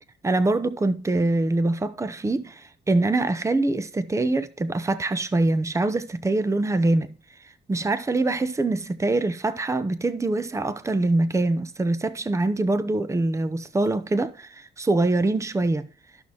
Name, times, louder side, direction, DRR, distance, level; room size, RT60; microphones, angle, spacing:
voice 1, 0.2-7.2 7.4-15.9, right 2 dB, 15° right, 0.7 m, -24 dB
13.5 x 6.2 x 2.8 m
cardioid pair, 90°, 20 cm